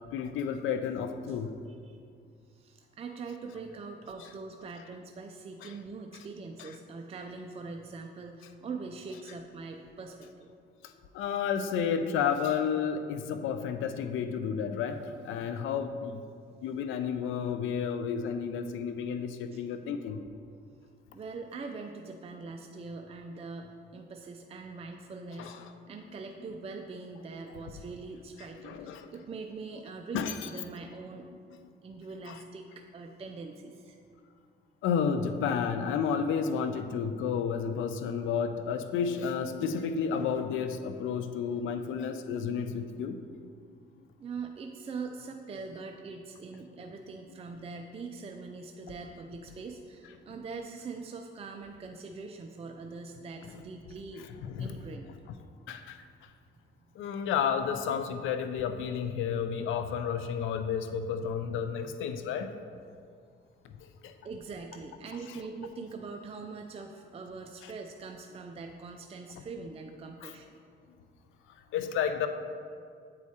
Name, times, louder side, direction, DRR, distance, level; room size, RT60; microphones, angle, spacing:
voice 1, 0.1-1.6 5.6-5.7 6.6-6.7 10.8-16.2 16.6-20.2 25.4-25.6 28.6-29.1 30.1-30.5 32.3-32.4 34.8-43.2 54.5-54.8 55.7-56.0 57.0-62.5 63.6-63.7 64.0-64.1 67.6-67.7 70.2-70.3 71.7-72.3, left 7 dB, 80° left, 8 dB, 0.4 m, -31 dB
voice 2, 2.5-10.5 16.3-16.4 21.1-31.3 31.8-34.0 44.2-54.3 54.6-55.1 64.0-70.6, right 4 dB, 30° right, 3 dB, 0.4 m, -42 dB
8.3 x 4.7 x 2.8 m, 2.2 s
cardioid pair, 90°, 20 cm